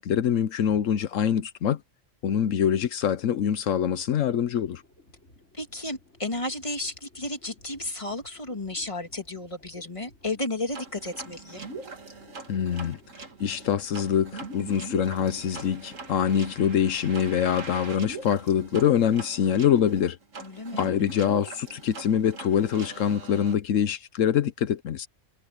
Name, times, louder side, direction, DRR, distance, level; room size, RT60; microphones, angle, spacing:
voice 1, 0.0-1.8 2.2-4.8 12.5-13.0 13.4-20.2 20.8-25.1, left 9 dB, 80° left, 1.1 m, -24 dB
sound 1, 4.6-18.9, left 1 dB, 65° left, 6.0 m, -57 dB
voice 2, 5.5-11.7 20.4-20.9, left 2 dB, 25° left, 2.4 m, -33 dB
sound 2, 10.7-23.5, right 3 dB, 80° right, 2.7 m, -41 dB
omnidirectional pair, 1.3 m